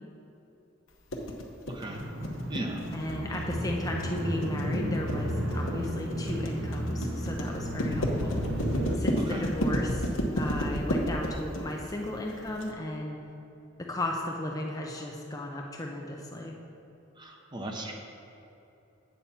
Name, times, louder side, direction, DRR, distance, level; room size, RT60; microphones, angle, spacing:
sound 1, 1.1-12.7, equal, 80° left, 1.0 m, -31 dB
voice 1, 1.7-2.0 2.5-2.8 9.3-9.4 17.2-18.0, right 1 dB, 20° right, 1 dB, 0.8 m, -37 dB
sound 2, 1.9-9.0, equal, 65° right, 1.0 m, -33 dB
voice 2, 2.9-8.4 8.9-10.1 10.4-13.2 13.8-16.5, left 1 dB, 20° left, 0 dB, 0.5 m, -35 dB
8.8 x 6.9 x 4.3 m, 2.8 s
head